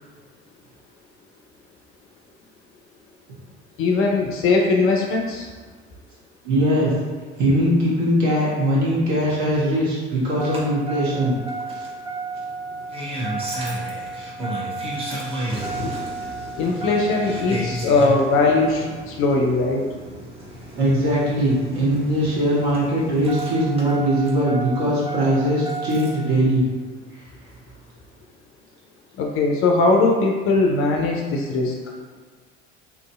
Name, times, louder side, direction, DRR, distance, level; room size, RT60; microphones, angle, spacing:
voice 1, 3.8-5.5 15.8-15.9 16.6-19.9 29.2-31.7, left 3 dB, 40° left, 1 dB, 0.4 m, -20 dB
voice 2, 6.4-6.9 7.4-11.4 11.7-11.8 20.7-26.6, equal, 55° right, -6 dB, 1.1 m, -20 dB
Engine starting, 10.4-26.3 27.6-27.7, right 2 dB, 15° right, 0.6 m, -32 dB
2.8 x 2.6 x 2.3 m, 1.5 s
figure-of-eight pair, 65°, 35 cm